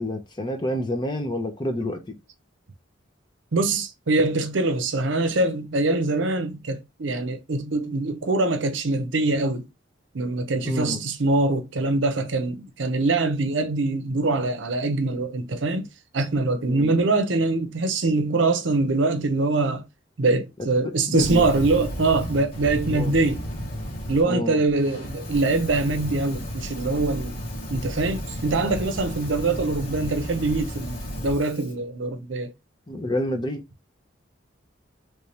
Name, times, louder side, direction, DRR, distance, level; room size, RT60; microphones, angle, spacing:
voice 1, 0.0-2.2 10.6-11.0 16.6-16.9 20.8-21.4 22.9-23.2 24.2-24.6 32.9-33.6, left 1 dB, 25° left, 0.7 m, -28 dB
voice 2, 3.5-9.7 10.1-15.9 16.1-19.9 20.2-23.4 24.1-27.4 27.7-32.5, right 3 dB, 70° right, 0.7 m, -23 dB
Fire, 21.1-24.2 24.7-31.7, equal, 50° left, 2.0 m, -33 dB
3.4 x 3.2 x 2.7 m
head